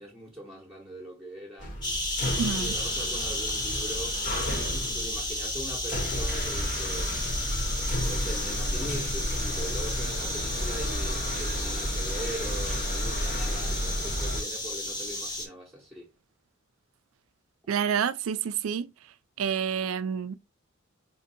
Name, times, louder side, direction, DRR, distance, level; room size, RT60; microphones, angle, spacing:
voice 1, 0.0-1.8 2.5-4.2 4.7-7.3 7.9-16.1, right 1 dB, 5° right, 1.0 m, -41 dB
sound 1, 1.6-14.4, equal, 40° left, 1.2 m, -32 dB
sound 2, 1.8-15.5, left 1 dB, 20° left, 0.8 m, -33 dB
voice 2, 2.4-2.7 17.7-18.9 19.4-20.3, right 7 dB, 75° right, 0.4 m, -28 dB
4.2 x 2.6 x 2.6 m
head